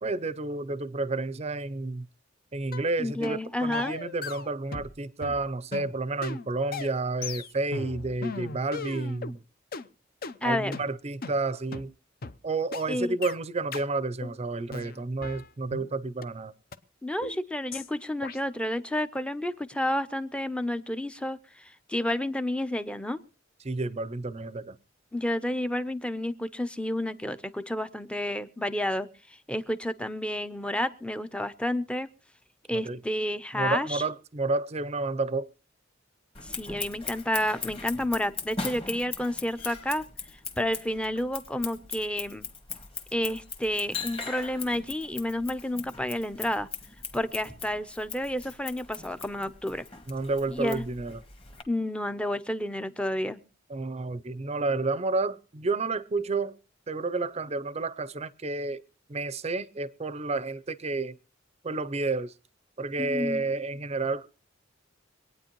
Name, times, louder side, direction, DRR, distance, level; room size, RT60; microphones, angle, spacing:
voice 1, 0.0-2.1 2.5-9.4 10.4-11.9 12.4-16.5 23.6-24.8 32.7-33.0 33.5-35.5 50.1-51.2 53.7-56.6 56.9-58.8 59.1-61.2 61.6-62.3 62.8-64.3, right 3 dB, 35° right, 0.6 m, -30 dB
sound 1, 2.7-2.9 3.2-3.4 3.7-4.9 5.2-9.4 9.7-9.9 10.2-10.4 10.7-10.9 11.2-11.4 11.7-11.9 12.2-12.4 12.7-12.9 13.2-13.4 13.7-13.9 14.2-14.4 14.7-15.9 16.2-16.3 16.7-16.8 17.2-17.4 17.7-17.9 18.2-18.4, left 4 dB, 50° left, 0.7 m, -37 dB
voice 2, 3.0-4.0 10.4-10.7 12.9-13.1 17.0-23.2 25.1-32.1 32.7-34.0 36.4-40.1 40.6-42.5 43.1-46.7 47.1-49.8 50.5-50.9 51.7-53.4 63.0-63.4, left 1 dB, 5° left, 0.6 m, -30 dB
Scissors, 36.3-51.6, left 5 dB, 30° left, 1.7 m, -40 dB
25.0 x 9.3 x 3.0 m
head